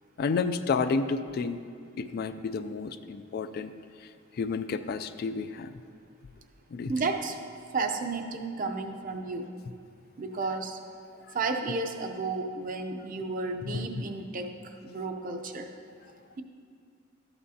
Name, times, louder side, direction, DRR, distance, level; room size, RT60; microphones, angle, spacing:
voice 1, 0.2-1.6 2.0-3.7 4.4-5.7 6.7-6.9 13.7-13.9, left 4 dB, 50° left, 11 dB, 0.3 m, -30 dB
voice 2, 6.9-7.4 7.7-9.5 10.2-10.8 11.3-14.5 14.8-15.7, right 3 dB, 40° right, 5 dB, 0.6 m, -32 dB
13.0 x 8.8 x 2.7 m, 2.3 s
head